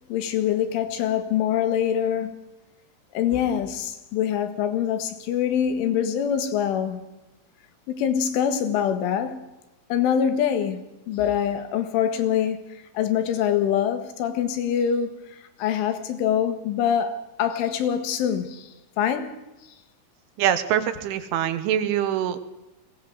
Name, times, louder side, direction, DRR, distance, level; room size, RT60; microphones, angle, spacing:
voice 1, 0.1-2.4 3.1-7.1 7.9-9.5 9.9-12.7 13.0-18.7 19.0-19.3, left 9 dB, 80° left, 4.2 m, -24 dB
voice 2, 20.4-22.5, right 10 dB, 80° right, 3.8 m, -24 dB
21.0 x 17.5 x 7.9 m
omnidirectional pair, 5.5 m